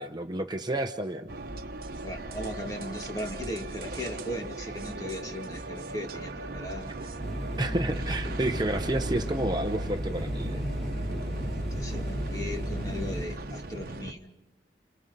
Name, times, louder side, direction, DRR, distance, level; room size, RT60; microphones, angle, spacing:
voice 1, 0.0-1.3 7.6-10.7, right 1 dB, 25° right, 6 dB, 0.9 m, -30 dB
sound 1, 1.3-14.1, right 2 dB, 55° right, 1.2 m, -39 dB
voice 2, 2.0-6.9 11.7-14.3, left 1 dB, 20° left, 2 dB, 2.7 m, -37 dB
sound 2, 7.2-13.2, equal, 5° left, 7.6 m, -33 dB
29.5 x 29.5 x 5.4 m, 1.0 s
head